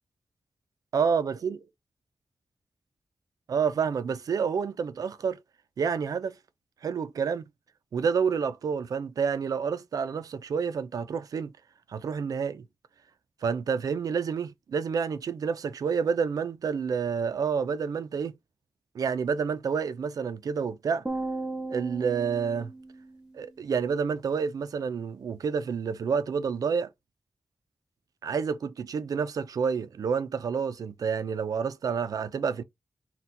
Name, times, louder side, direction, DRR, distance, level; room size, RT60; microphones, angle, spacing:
voice 1, 0.9-1.6 3.5-5.4 5.8-6.3 6.8-7.5 7.9-11.5 11.9-12.6 13.4-18.3 18.9-21.0 21.7-22.7 23.3-26.9 28.2-32.6, right 6 dB, 85° right, 0.5 m, -29 dB
sound 1, 21.1-23.5, right 2 dB, 15° right, 0.9 m, -36 dB
4.3 x 2.3 x 3.8 m
wide cardioid pair, 150°, 6 cm